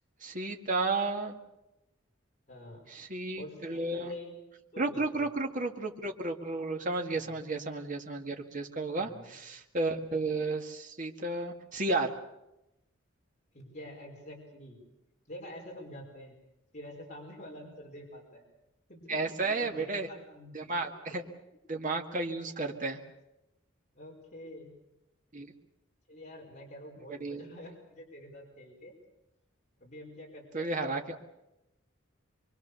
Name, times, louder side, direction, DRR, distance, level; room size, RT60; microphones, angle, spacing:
voice 1, 0.2-1.4 2.9-4.1 4.8-12.1 19.1-20.1 20.5-21.2 21.7-23.0 25.3-25.5 27.1-27.4 30.5-31.2, right 3 dB, 40° right, 2 dB, 2.0 m, -33 dB
voice 2, 2.5-2.9 3.3-4.4 4.7-5.3 7.1-7.4 8.9-9.4 13.5-14.8 15.3-16.4 16.7-18.4 18.9-20.7 21.1-21.2 22.6-22.7 23.9-24.8 26.1-29.0 29.8-30.8, left 1 dB, 40° left, -2 dB, 5.3 m, -47 dB
25.0 x 23.5 x 6.9 m, 0.91 s
head